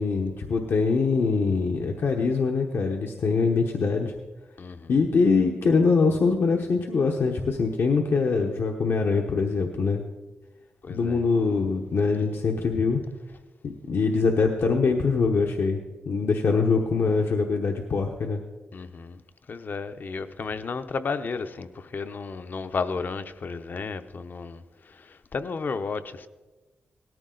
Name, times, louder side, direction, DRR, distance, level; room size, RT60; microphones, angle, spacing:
voice 1, 0.0-4.1 4.9-10.0 10.9-13.0 13.6-18.4, left 4 dB, 65° left, 1.0 m, -23 dB
voice 2, 4.6-5.0 10.8-11.2 18.7-19.2 19.5-26.3, left 4 dB, 50° left, 0.7 m, -33 dB
18.0 x 14.0 x 3.9 m
wide cardioid pair, 115°, 4 cm